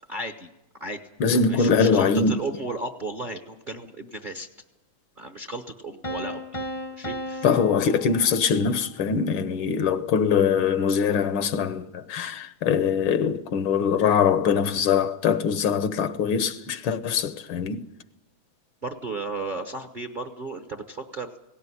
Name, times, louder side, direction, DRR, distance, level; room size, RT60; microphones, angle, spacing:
voice 1, 0.1-0.5 0.8-1.0 1.3-4.5 5.2-6.4 7.0-7.4 18.8-21.4, right 2 dB, 35° right, 0.8 m, -34 dB
voice 2, 1.2-2.4 7.4-17.8, left 6 dB, 80° left, 1.8 m, -23 dB
Piano, 6.0-8.9, equal, 25° left, 0.7 m, -35 dB
17.5 x 17.5 x 9.8 m
omnidirectional pair, 2.2 m